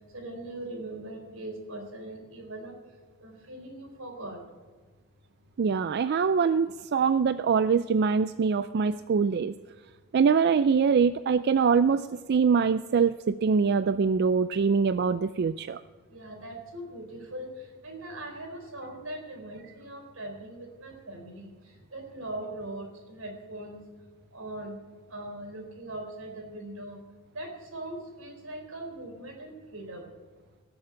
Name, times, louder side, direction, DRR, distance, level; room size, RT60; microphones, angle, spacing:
voice 1, 0.1-2.7 3.2-4.4 16.1-17.5 17.8-21.5 21.9-23.8 24.3-24.8 25.1-27.0 27.3-30.1, right 1 dB, 85° right, 3 dB, 4.0 m, -40 dB
voice 2, 5.6-9.5 10.1-15.8, right 5 dB, 50° right, 13 dB, 0.4 m, -24 dB
18.5 x 7.1 x 8.9 m, 1.4 s
head